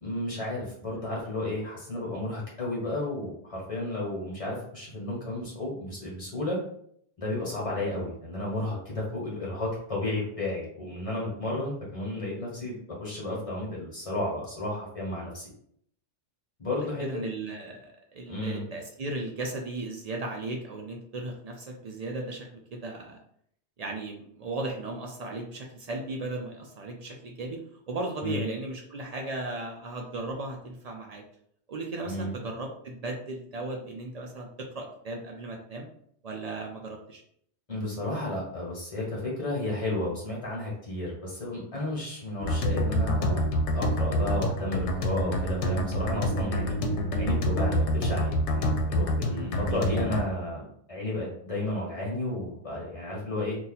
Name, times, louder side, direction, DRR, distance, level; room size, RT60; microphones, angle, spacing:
voice 1, 0.0-6.6 7.2-15.5 16.6-17.1 18.3-18.6 28.2-28.4 32.1-32.3 37.7-43.4 43.7-46.8 47.2-53.6, left 1 dB, 30° left, -4 dB, 1.3 m, -32 dB
voice 2, 17.0-23.2 23.8-27.6 27.9-31.2 31.7-35.9 36.2-37.2 49.2-49.6, right 2 dB, 55° right, 1 dB, 0.4 m, -36 dB
sound 1, 42.4-50.2, equal, 85° left, 0.9 m, -27 dB
2.7 x 2.4 x 3.9 m, 0.67 s
omnidirectional pair, 1.2 m